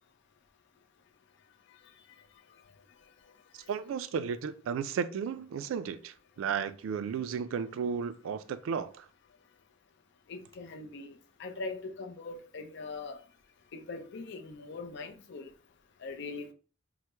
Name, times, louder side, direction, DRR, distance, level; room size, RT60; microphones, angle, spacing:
voice 1, 3.7-9.1, right 6 dB, 80° right, 0.3 m, -34 dB
voice 2, 10.3-13.2 13.7-15.5 16.0-16.5, left 3 dB, 60° left, 0.5 m, -41 dB
3.0 x 2.0 x 3.3 m
head